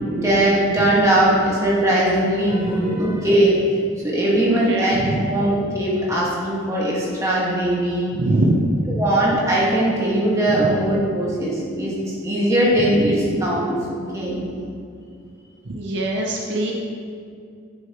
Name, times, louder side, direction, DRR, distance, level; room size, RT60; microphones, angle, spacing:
voice 1, 0.1-3.6 4.0-8.1 9.0-13.8 14.1-14.4, right 1 dB, 15° right, -6 dB, 1.6 m, -20 dB
voice 2, 4.5-5.3 8.1-8.8 10.5-10.6 13.0-13.1 15.7-16.7, right 1 dB, 60° right, 0 dB, 0.6 m, -23 dB
10.5 x 6.7 x 3.0 m, 2.4 s
head